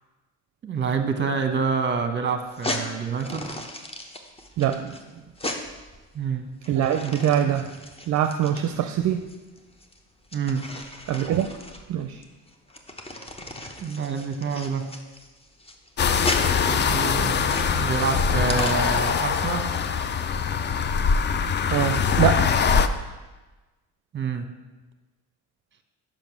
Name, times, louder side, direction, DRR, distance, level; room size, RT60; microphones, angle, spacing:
voice 1, 0.6-3.5 6.1-6.5 10.3-10.7 13.8-14.9 16.6-19.7 24.1-24.6, right 5 dB, 30° right, 7 dB, 0.9 m, -27 dB
sound 1, 2.4-19.2, left 1 dB, 15° left, 0.8 m, -36 dB
voice 2, 4.6-5.0 6.7-7.7 8.1-9.3 11.1-11.5 11.9-12.2 21.7-22.5, right 10 dB, 50° right, 7 dB, 0.5 m, -23 dB
sound 2, 16.0-22.9, left 6 dB, 30° left, 0.4 m, -23 dB
5.3 x 5.2 x 6.0 m, 1.2 s
supercardioid pair, 80°, 36 cm